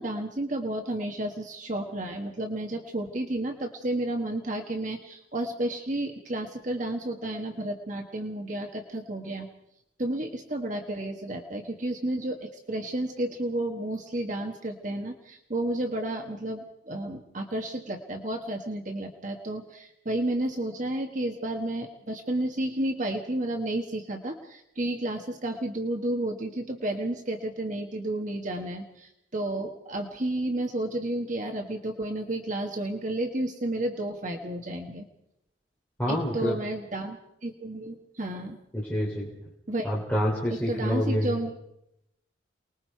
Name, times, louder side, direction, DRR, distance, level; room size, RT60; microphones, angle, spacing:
voice 1, 0.0-9.5 10.0-35.1 36.1-38.6 39.7-39.9 40.7-41.5, right 1 dB, 40° right, 3 dB, 1.4 m, -31 dB
voice 2, 36.0-36.6 38.7-39.3 39.8-41.3, equal, 10° left, -5 dB, 3.3 m, -27 dB
28.5 x 20.5 x 4.6 m, 0.81 s
head